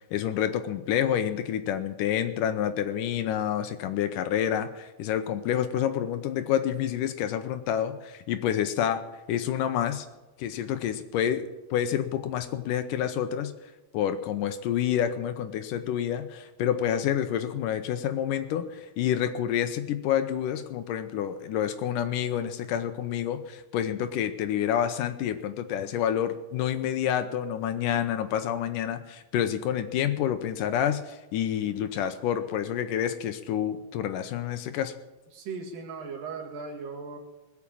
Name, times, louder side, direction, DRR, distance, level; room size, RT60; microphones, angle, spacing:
voice 1, 0.1-9.0 9.3-10.1 10.4-13.5 13.9-34.9, left 10 dB, 75° left, 9 dB, 2.2 m, -28 dB
voice 2, 35.3-37.2, right 5 dB, 70° right, 1 dB, 3.7 m, -37 dB
20.5 x 7.3 x 8.6 m, 1.1 s
omnidirectional pair, 4.1 m